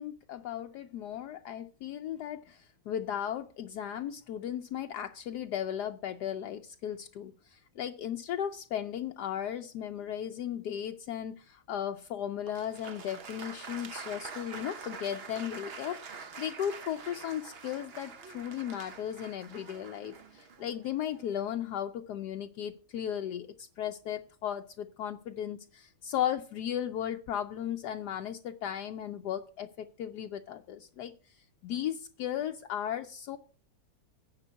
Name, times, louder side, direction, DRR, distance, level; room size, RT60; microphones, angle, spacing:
voice 1, 0.0-33.4, left 10 dB, 70° left, 6 dB, 1.1 m, -36 dB
Applause, 12.5-21.4, right 5 dB, 45° right, 0.8 m, -46 dB
9.8 x 5.2 x 8.0 m, 0.41 s
omnidirectional pair, 1.9 m